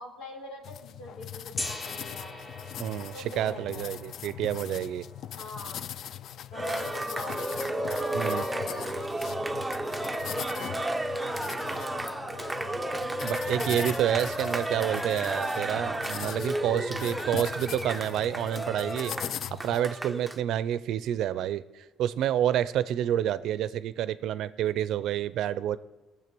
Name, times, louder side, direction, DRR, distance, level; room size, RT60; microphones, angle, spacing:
voice 1, 0.0-2.3 3.1-4.0 5.3-5.9 6.5-7.7 8.1-9.4 10.0-11.0 11.7-13.3 16.7-16.9, left 2 dB, 90° left, 0 dB, 3.7 m, -43 dB
sound 1, 0.6-19.8, left 10 dB, 60° left, 0.3 m, -41 dB
Gong, 1.6-7.5, left 1 dB, 25° left, 1.8 m, -43 dB
voice 2, 2.8-5.0 8.1-8.5 13.2-19.1 19.6-25.8, right 11 dB, 70° right, 16 dB, 0.5 m, -29 dB
Cheering, 6.5-20.4, right 1 dB, 10° right, 0.7 m, -32 dB
20.0 x 7.3 x 6.1 m, 1.1 s
cardioid pair, 110°, 0 cm